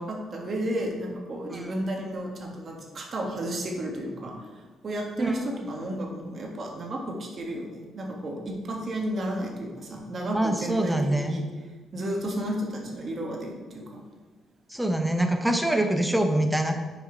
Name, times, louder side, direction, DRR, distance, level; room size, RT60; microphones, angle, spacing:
voice 1, 0.0-11.4 11.9-14.0, right 1 dB, 45° right, 0 dB, 1.5 m, -32 dB
voice 2, 10.3-11.4 14.7-16.7, right 1 dB, 5° right, 5 dB, 0.8 m, -24 dB
7.1 x 4.7 x 4.5 m, 1.3 s
cardioid pair, 90°, 0 cm